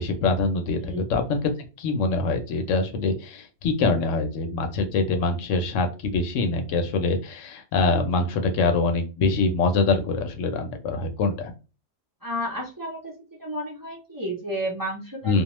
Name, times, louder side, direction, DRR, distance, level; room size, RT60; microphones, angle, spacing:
voice 1, 0.0-1.5 1.8-11.5 15.2-15.4, left 3 dB, 85° left, 6 dB, 0.9 m, -24 dB
voice 2, 12.2-13.1 13.4-15.4, equal, 20° right, -3 dB, 0.6 m, -32 dB
2.3 x 2.2 x 3.0 m, 0.32 s
omnidirectional pair, 1.3 m